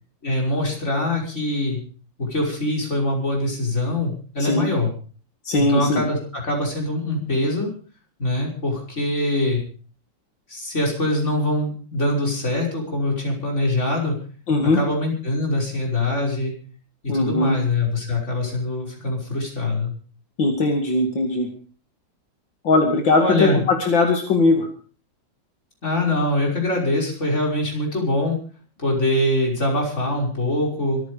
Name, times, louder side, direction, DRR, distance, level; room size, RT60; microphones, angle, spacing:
voice 1, 0.2-1.8 2.2-4.9 5.5-7.7 8.2-9.6 10.5-14.2 14.6-16.5 17.0-19.9 23.2-23.6 25.8-28.4 28.8-31.0, left 1 dB, 35° left, -1 dB, 6.1 m, -23 dB
voice 2, 5.4-6.0 14.5-14.8 17.1-17.6 20.4-21.5 22.6-24.7, left 3 dB, 75° left, 3 dB, 2.9 m, -19 dB
25.5 x 9.9 x 5.1 m, 0.41 s
omnidirectional pair, 2.1 m